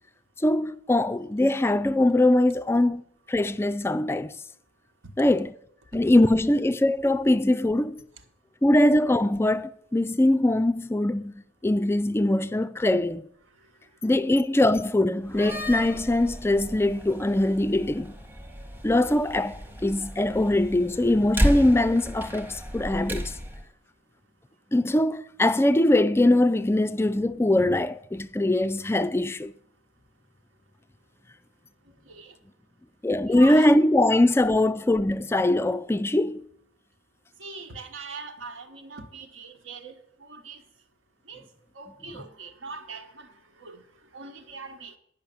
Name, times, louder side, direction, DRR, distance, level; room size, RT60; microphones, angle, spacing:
voice 1, 0.4-3.0 3.3-4.4 5.2-5.5 5.9-8.1 8.6-13.2 14.0-18.1 18.8-23.3 24.7-29.5 33.0-36.4, left 1 dB, 10° left, 0.3 m, -22 dB
voice 2, 4.6-5.3 5.8-6.3 8.1-8.6 13.5-14.1 18.4-18.9 23.6-24.7 29.7-30.1 30.3-32.8 33.3-33.7 37.3-40.9 41.2-45.0, right 4 dB, 80° right, 1.2 m, -44 dB
Slam, 15.2-23.6, equal, 10° right, 0.9 m, -33 dB
10.0 x 5.6 x 7.0 m
head